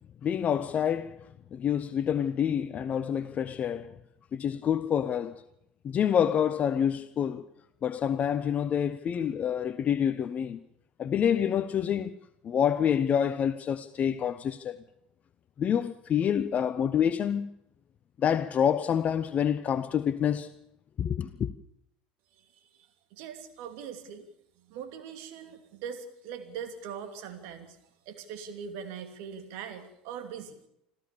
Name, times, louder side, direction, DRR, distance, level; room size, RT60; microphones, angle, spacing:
voice 1, 0.2-4.0 4.3-5.4 5.8-7.5 7.8-10.6 11.0-12.1 12.4-14.8 15.6-17.5 18.2-20.5 21.0-21.5, left 8 dB, 30° left, 0.7 m, -27 dB
voice 2, 23.1-24.3 24.7-27.8 28.1-30.6, right 7 dB, 55° right, 2.8 m, -41 dB
26.5 x 14.0 x 6.9 m
figure-of-eight pair, 75°, 5 cm